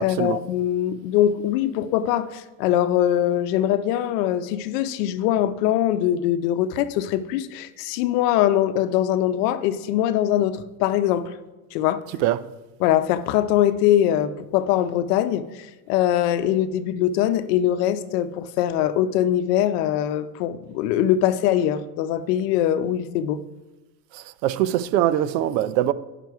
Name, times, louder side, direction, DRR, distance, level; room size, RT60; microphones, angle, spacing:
voice 1, 0.0-11.4 11.7-12.0 12.8-23.4, left 11 dB, 75° left, 0.8 m, -22 dB
voice 2, 24.1-25.9, right 12 dB, 80° right, 0.7 m, -23 dB
10.5 x 6.0 x 4.6 m
supercardioid pair, 140°, 48 cm